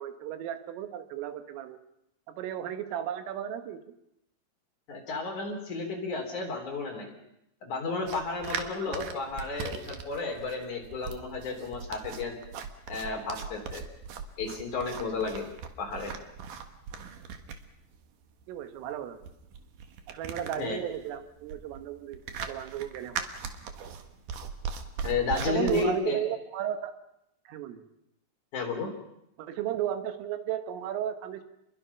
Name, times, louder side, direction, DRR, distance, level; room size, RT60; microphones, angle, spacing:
voice 1, 0.0-1.8 2.3-3.9 8.8-9.0 18.5-19.2 20.1-23.3 25.5-26.9 27.5-27.8 29.4-31.4, right 11 dB, 90° right, 9 dB, 4.0 m, -34 dB
voice 2, 4.9-7.1 7.6-12.4 12.9-13.8 14.4-15.4 15.8-16.1 20.6-20.8 25.0-26.2 28.5-28.9, left 4 dB, 40° left, 2 dB, 4.5 m, -32 dB
sound 1, 8.1-25.9, right 6 dB, 65° right, 2.2 m, -40 dB
28.5 x 22.0 x 5.9 m, 0.82 s
omnidirectional pair, 5.7 m